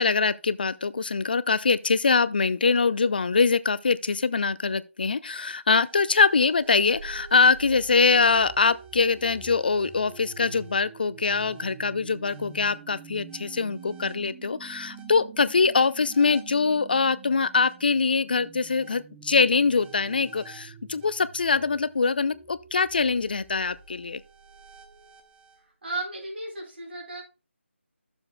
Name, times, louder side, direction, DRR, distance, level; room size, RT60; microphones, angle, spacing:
voice 1, 0.0-24.2, left 4 dB, 45° left, 0.5 m, -23 dB
sound 1, 5.8-25.6, right 6 dB, 10° right, 0.5 m, -47 dB
voice 2, 25.8-27.2, right 2 dB, 50° right, 4.1 m, -34 dB
12.5 x 7.0 x 2.2 m
figure-of-eight pair, 160°, 7 cm